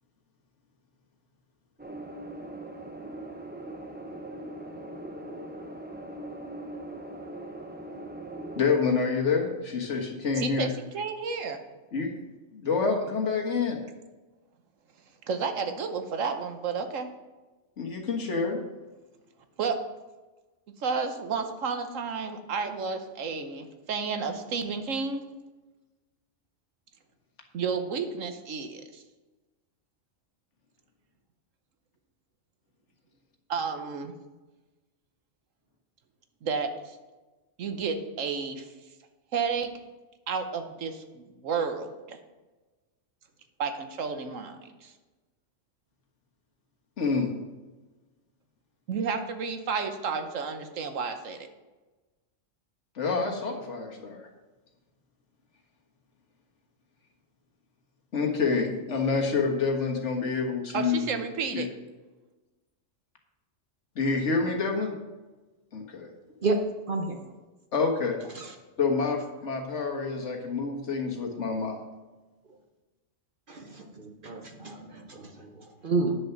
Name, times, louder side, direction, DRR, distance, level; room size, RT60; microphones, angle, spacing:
sound 1, 1.8-8.6, right 1 dB, 10° right, 0.5 m, -40 dB
voice 1, 8.6-10.7 11.9-12.1 12.5-13.8 17.8-18.6 47.0-47.3 53.0-54.2 58.1-61.2 61.5-61.7 64.0-65.0 65.7-66.1 67.7-68.2 68.8-71.8, left 4 dB, 65° left, 2 dB, 1.8 m, -27 dB
voice 2, 10.4-11.6 15.3-17.1 19.6-19.8 20.8-25.2 27.5-29.0 33.5-34.1 36.4-37.0 37.6-38.7 39.3-39.7 40.3-42.2 43.6-44.9 48.9-51.5 60.7-61.7, right 5 dB, 85° right, 7 dB, 1.3 m, -31 dB
voice 3, 66.9-67.2 68.3-68.5 73.5-76.1, right 3 dB, 45° right, 3 dB, 1.0 m, -31 dB
10.0 x 6.8 x 5.8 m, 1.2 s
omnidirectional pair, 1.3 m